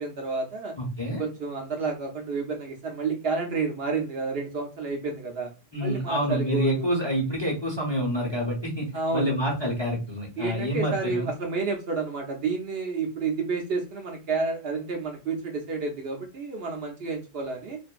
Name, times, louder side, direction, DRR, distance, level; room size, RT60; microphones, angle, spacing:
voice 1, 0.0-0.7 1.2-5.5 5.8-6.9 8.9-9.3 10.4-17.8, right 4 dB, 60° right, 2 dB, 0.7 m, -30 dB
voice 2, 0.8-1.2 5.7-8.9 9.1-11.3, equal, 25° left, -2 dB, 0.7 m, -27 dB
2.5 x 2.5 x 2.3 m, 0.31 s
omnidirectional pair, 1.3 m